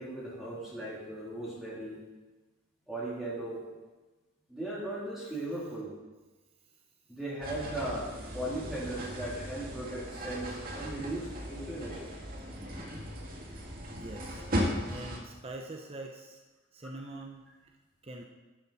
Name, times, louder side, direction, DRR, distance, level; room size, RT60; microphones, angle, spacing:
voice 1, 0.0-2.0 2.9-3.6 4.5-5.9 7.1-12.1, right 1 dB, ahead, -9 dB, 3.4 m, -37 dB
voice 2, 5.3-5.7 13.9-14.5 14.9-16.4 16.7-17.5 18.0-18.2, right 2 dB, 30° right, 1 dB, 0.9 m, -44 dB
sound 1, 7.4-15.2, equal, 45° right, 2.0 m, -37 dB
12.5 x 11.5 x 4.2 m, 1.2 s
head